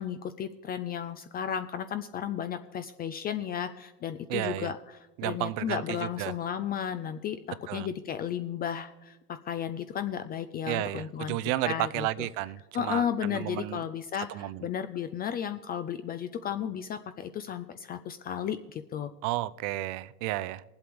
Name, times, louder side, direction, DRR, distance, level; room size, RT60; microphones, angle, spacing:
voice 1, 0.0-11.4 11.6-12.3 12.7-19.1, left 9 dB, 20° left, 0.3 m, -34 dB
voice 2, 4.3-4.7 5.2-6.3 7.7-7.9 10.7-13.8 14.3-14.7 19.2-20.6, right 16 dB, 45° right, 0.5 m, -32 dB
21.5 x 7.9 x 3.4 m
hypercardioid pair, 80°, 47 cm